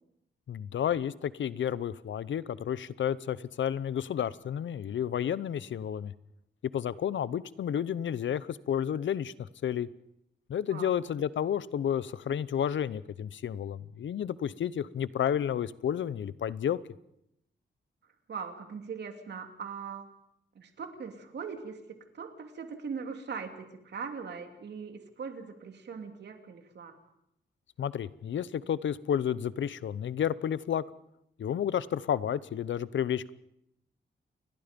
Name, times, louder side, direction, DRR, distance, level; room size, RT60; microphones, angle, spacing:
voice 1, 0.5-6.1 6.7-9.9 10.5-16.8 27.8-30.8 31.4-33.3, left 9 dB, 75° left, 17 dB, 0.8 m, -31 dB
voice 2, 18.3-20.1 20.5-21.8 22.1-27.0, right 6 dB, 60° right, 5 dB, 2.9 m, -40 dB
29.5 x 21.5 x 5.3 m, 0.80 s
wide cardioid pair, 160°, 19 cm